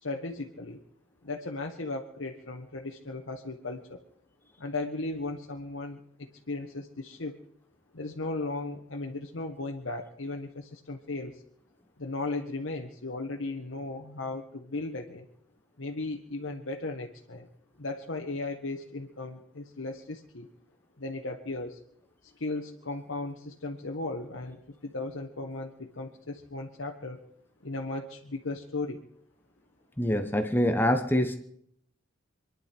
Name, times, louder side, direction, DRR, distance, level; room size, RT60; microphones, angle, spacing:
voice 1, 0.0-0.8 1.2-4.0 4.6-7.3 7.9-11.4 12.0-15.3 15.8-17.5 17.8-20.5 21.0-21.8 22.4-27.3 27.6-29.0, left 2 dB, 70° left, 1 dB, 1.4 m, -36 dB
voice 2, 30.0-31.4, equal, 10° left, 6 dB, 1.0 m, -25 dB
27.0 x 10.5 x 4.5 m, 0.69 s
head